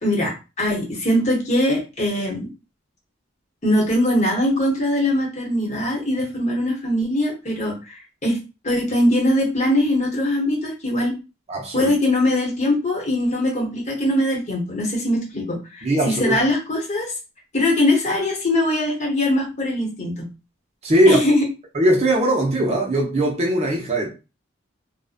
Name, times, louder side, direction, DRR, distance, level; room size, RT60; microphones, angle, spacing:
voice 1, 0.0-2.5 3.6-8.4 8.6-11.2 11.7-17.1 17.5-20.2 21.1-21.4, left 1 dB, 35° left, 0.9 m, -21 dB
voice 2, 11.5-11.9 15.8-16.4 20.8-21.2 21.7-24.1, right 1 dB, 30° right, 0.5 m, -19 dB
2.6 x 2.1 x 2.4 m
head